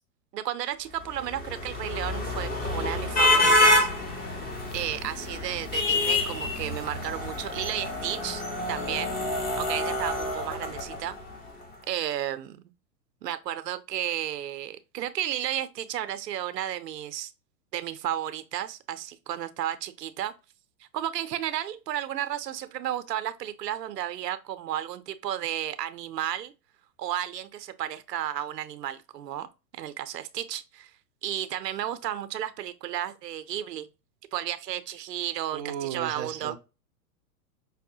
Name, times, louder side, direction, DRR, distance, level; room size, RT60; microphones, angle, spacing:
voice 1, 0.3-3.9 4.7-8.4 8.7-9.2 9.6-11.2 11.8-12.6 13.2-17.3 17.7-20.3 20.9-26.5 27.0-29.5 29.7-30.9 31.2-33.9 34.3-36.5, right 11 dB, 85° right, 0.6 m, -33 dB
sound 1, 1.1-11.4, left 2 dB, 20° left, 0.8 m, -27 dB
voice 2, 35.5-36.6, right 9 dB, 30° right, 0.4 m, -35 dB
5.4 x 2.1 x 2.6 m
hypercardioid pair, 125°, 47 cm